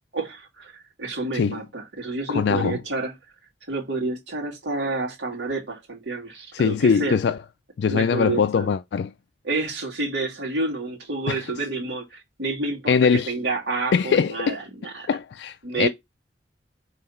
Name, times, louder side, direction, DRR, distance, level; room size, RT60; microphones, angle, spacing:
voice 1, 0.1-0.7 1.0-3.1 3.7-7.2 7.9-8.7 9.4-15.1 15.6-15.9, right 3 dB, 80° right, 2.1 m, -29 dB
voice 2, 2.3-2.8 6.5-7.4 7.8-9.1 11.3-11.4 12.9-13.3 13.9-14.6 15.1-15.9, left 6 dB, 70° left, 0.3 m, -22 dB
5.6 x 3.2 x 5.5 m
head